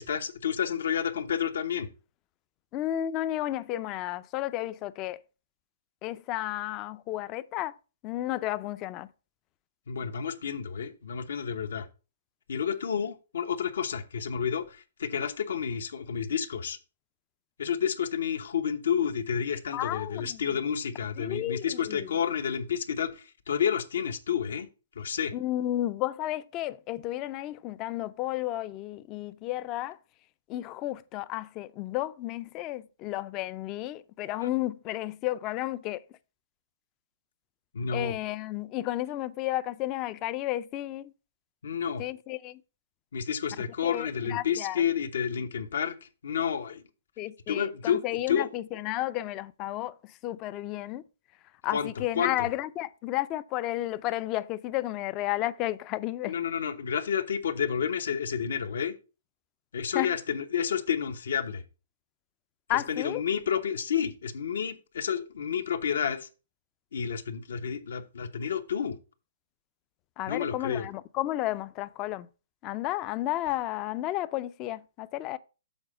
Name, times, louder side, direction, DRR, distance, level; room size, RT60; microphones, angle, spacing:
voice 1, 0.0-1.9 9.9-11.9 12.5-16.8 17.6-24.7 24.9-25.3 34.4-34.5 37.7-38.2 41.6-42.0 43.1-46.8 47.5-48.5 51.7-52.5 56.2-59.0 59.7-61.6 62.7-66.3 66.9-69.0 70.3-70.9, left 7 dB, 75° left, 0.9 m, -30 dB
voice 2, 2.7-5.2 6.0-7.7 8.0-9.1 19.7-20.4 21.2-22.0 25.3-30.0 30.5-36.0 37.9-41.1 42.0-42.6 43.8-44.8 47.2-47.7 48.0-49.9 50.2-51.0 51.6-56.3 59.9-60.1 62.7-63.2 70.2-72.3 72.6-75.4, left 15 dB, 25° left, 0.3 m, -32 dB
7.1 x 4.1 x 4.9 m
hypercardioid pair, 155°, 0 cm